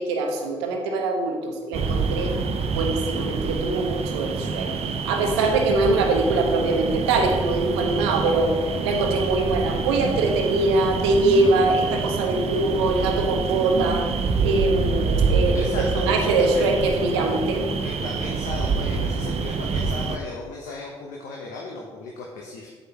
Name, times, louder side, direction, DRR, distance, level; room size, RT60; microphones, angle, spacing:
voice 1, 0.0-2.3 2.7-4.7 5.0-8.5 8.8-14.1 14.4-15.7 15.9-17.6, right 2 dB, 80° right, 3 dB, 1.0 m, -23 dB
sound 1, 1.7-20.2, right 4 dB, 50° right, 0.8 m, -26 dB
voice 2, 15.5-16.7 17.8-22.7, left 3 dB, 70° left, -1 dB, 1.0 m, -36 dB
8.2 x 7.9 x 2.9 m, 1.4 s
hypercardioid pair, 45°, 14 cm